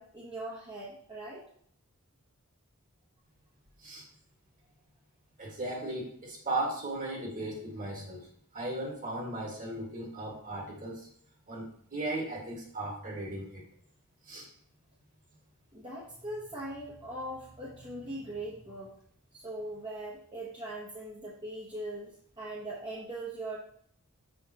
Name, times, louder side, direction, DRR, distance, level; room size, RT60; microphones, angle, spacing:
voice 1, 0.0-1.4 15.7-18.9 19.3-22.1 22.4-23.6, right 1 dB, 20° right, -6 dB, 1.0 m, -40 dB
voice 2, 5.4-8.3 8.5-11.1 11.5-13.6 14.3-14.5, right 2 dB, 40° right, -1 dB, 1.7 m, -36 dB
6.6 x 5.4 x 2.9 m, 0.63 s
head